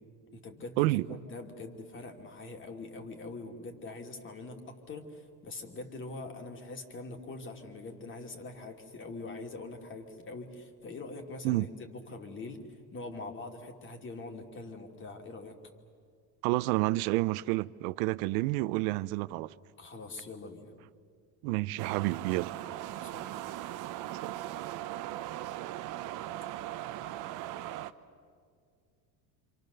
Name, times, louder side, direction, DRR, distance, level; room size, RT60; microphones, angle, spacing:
voice 1, 0.3-12.6 12.9-15.6 19.8-20.7 22.7-23.3, left 3 dB, 30° left, 2.7 m, -43 dB
voice 2, 16.4-19.5 21.4-22.5 24.2-24.4, right 20 dB, 80° right, 0.7 m, -29 dB
sound 1, 21.8-27.9, right 14 dB, 45° right, 0.9 m, -39 dB
28.0 x 27.5 x 6.8 m
cardioid pair, 150°, 42 cm